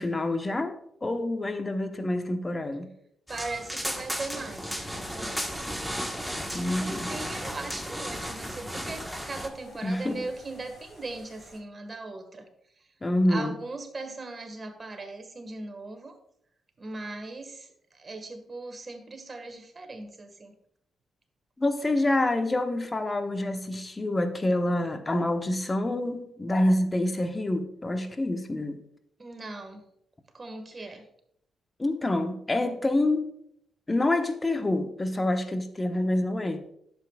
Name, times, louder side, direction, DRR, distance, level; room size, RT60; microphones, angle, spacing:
voice 1, 0.0-2.9 6.5-7.1 9.8-10.3 13.0-13.5 21.6-28.8 31.8-33.3 33.9-36.6, left 1 dB, 25° left, 1.2 m, -27 dB
sound 1, 3.3-9.5, equal, ahead, 1.4 m, -34 dB
voice 2, 3.3-5.8 6.8-12.5 12.8-12.9 13.3-16.2 16.8-20.6 29.2-29.8 30.3-31.1, right 2 dB, 40° right, 1.7 m, -39 dB
sound 2, 3.8-11.6, left 1 dB, 55° left, 3.6 m, -52 dB
11.0 x 7.5 x 2.4 m
hypercardioid pair, 45°, 0 cm